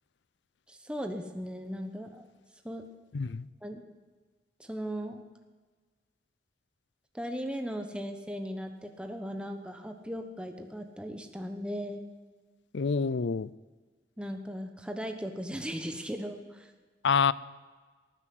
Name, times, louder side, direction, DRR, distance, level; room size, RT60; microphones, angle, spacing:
voice 1, 0.7-2.3 2.6-2.8 3.6-3.8 4.6-5.2 7.1-12.0 14.2-16.7, equal, 5° right, 5 dB, 1.1 m, -37 dB
voice 2, 3.1-3.5 12.7-13.5 17.0-17.3, left 5 dB, 85° left, 19 dB, 0.5 m, -26 dB
18.5 x 9.9 x 7.8 m, 1.4 s
head